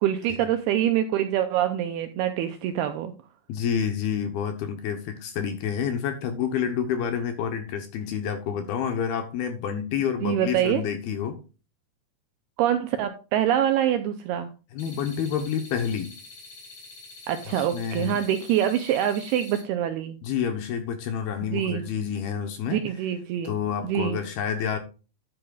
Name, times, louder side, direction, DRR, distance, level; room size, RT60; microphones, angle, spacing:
voice 1, 0.0-3.1 10.2-10.8 12.6-14.5 17.3-20.2 21.5-21.8 22.7-23.5 23.8-24.2, right 10 dB, 80° right, 8 dB, 2.3 m, -25 dB
voice 2, 3.5-11.4 14.7-16.1 17.5-18.2 20.2-22.8 23.4-24.8, left 8 dB, 70° left, 7 dB, 2.5 m, -28 dB
sound 1, 14.8-19.6, left 3 dB, 45° left, 4.4 m, -46 dB
11.0 x 8.6 x 2.4 m, 0.33 s
omnidirectional pair, 5.3 m